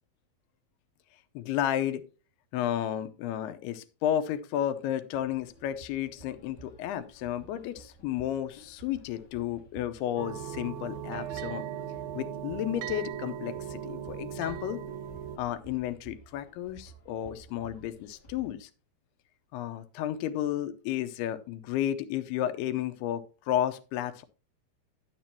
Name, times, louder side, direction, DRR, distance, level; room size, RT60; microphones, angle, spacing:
voice 1, 1.3-2.0 2.5-11.7 12.1-14.8 15.4-18.7 19.5-24.2, left 11 dB, 90° left, 11 dB, 2.7 m, -32 dB
sound 1, 5.1-18.6, right 3 dB, 65° left, 1.0 m, -53 dB
sound 2, 10.2-15.4, right 10 dB, 80° right, 2.7 m, -38 dB
10.5 x 9.7 x 2.8 m, 0.33 s
omnidirectional pair, 4.5 m